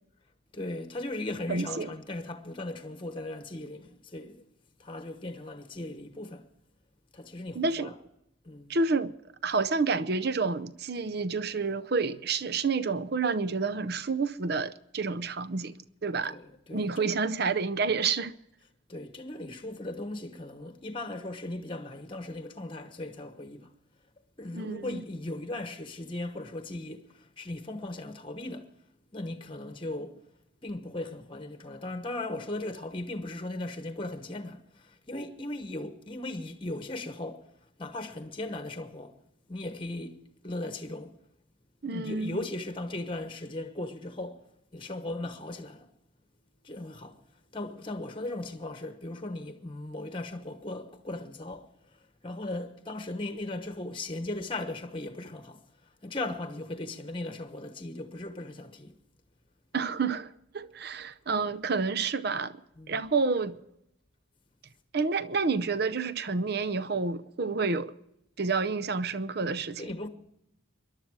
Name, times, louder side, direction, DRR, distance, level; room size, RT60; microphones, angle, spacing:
voice 1, 0.5-4.5 4.8-6.4 7.1-7.9 8.4-8.8 16.3-17.1 18.9-23.7 24.4-28.7 29.1-30.2 30.6-37.5 37.8-39.2 39.5-41.2 41.9-44.4 44.7-45.9 46.6-47.2 47.5-58.9 62.8-63.0 69.8-70.1, left 2 dB, 25° left, 1.1 m, -38 dB
voice 2, 1.5-1.9 7.5-7.9 8.7-9.1 9.4-15.7 16.0-16.4 16.7-18.3 24.5-25.0 41.8-42.4 59.7-62.6 62.9-63.6 64.9-67.9 68.4-69.8, right 4 dB, 50° right, 0.7 m, -29 dB
21.5 x 11.5 x 4.8 m
head